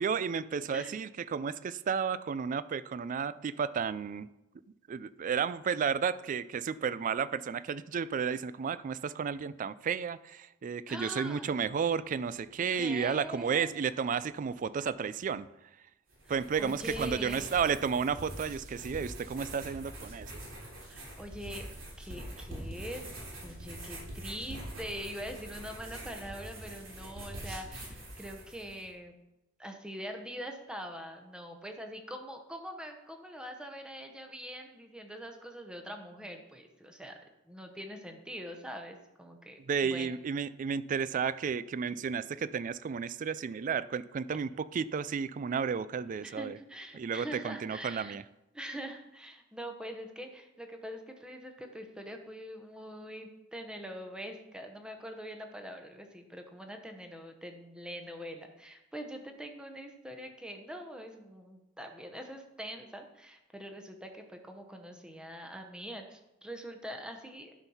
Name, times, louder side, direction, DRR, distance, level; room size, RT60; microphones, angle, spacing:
voice 1, 0.0-4.3 4.9-15.5 16.3-20.3 39.7-46.6 46.9-48.2, right 6 dB, 40° right, 0.3 m, -32 dB
voice 2, 10.9-11.5 12.7-13.7 16.2-17.6 20.9-21.7 22.0-23.0 23.4-29.2 29.6-37.2 37.5-40.2 46.2-48.2 48.5-67.5, equal, 5° right, 0.9 m, -43 dB
sound 1, 16.1-28.8, right 1 dB, 80° right, 3.4 m, -44 dB
11.0 x 4.5 x 5.6 m
head